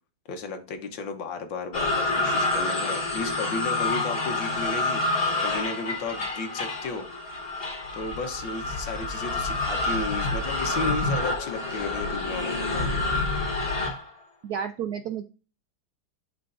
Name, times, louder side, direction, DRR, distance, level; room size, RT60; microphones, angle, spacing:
voice 1, 0.3-7.1 7.9-13.0, left 4 dB, 70° left, 6 dB, 1.7 m, -34 dB
sound 1, 1.7-14.1, left 2 dB, 30° left, 1.4 m, -28 dB
voice 2, 14.4-15.2, right 8 dB, 75° right, 8 dB, 0.9 m, -31 dB
12.0 x 4.5 x 2.5 m, 0.35 s
omnidirectional pair, 2.2 m